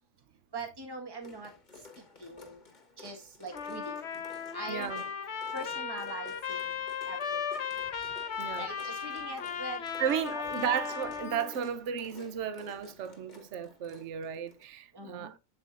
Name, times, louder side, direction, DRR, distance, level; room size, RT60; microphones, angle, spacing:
voice 1, 0.5-1.5 2.2-2.6 3.0-3.9 4.5-4.9 5.5-7.4 8.6-9.8 10.3-10.7 14.9-15.3, right 2 dB, 15° right, 1.5 m, -42 dB
sound 1, 1.2-14.6, left 4 dB, 35° left, 1.4 m, -54 dB
Trumpet, 3.5-11.5, left 7 dB, 55° left, 1.2 m, -36 dB
voice 2, 4.7-5.0 8.4-8.7 10.0-15.4, right 8 dB, 60° right, 1.1 m, -34 dB
7.9 x 7.6 x 2.5 m
omnidirectional pair, 1.4 m